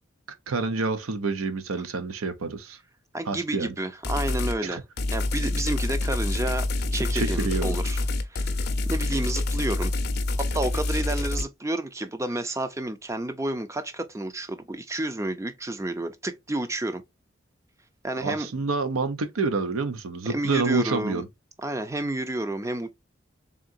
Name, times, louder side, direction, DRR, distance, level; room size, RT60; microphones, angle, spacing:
voice 1, 0.5-2.8 3.3-3.7 4.6-4.8 7.1-7.8 18.2-21.2, right 4 dB, 85° right, 0.6 m, -28 dB
voice 2, 3.1-4.8 5.1-8.0 8.3-8.6 8.9-9.9 10.4-17.0 18.0-18.5 20.3-21.2 21.6-22.9, right 1 dB, 15° right, 0.4 m, -30 dB
sound 1, 4.0-4.6 5.0-11.4, left 2 dB, 50° left, 0.5 m, -27 dB
3.7 x 3.7 x 2.5 m
head